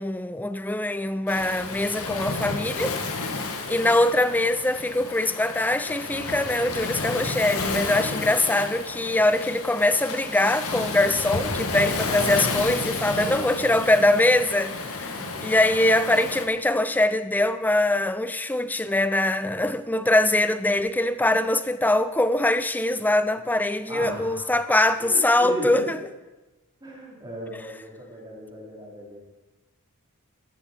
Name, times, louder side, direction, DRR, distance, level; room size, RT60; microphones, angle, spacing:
voice 1, 0.0-3.4 3.7-26.0, left 1 dB, 10° left, 0.4 m, -23 dB
Waves surf, 1.3-16.5, left 3 dB, 75° left, 1.7 m, -31 dB
voice 2, 3.3-3.7 13.0-13.8 15.2-15.6 23.9-24.5 25.0-25.9 26.8-29.2, equal, 20° right, 3.7 m, -37 dB
14.5 x 12.0 x 4.5 m
head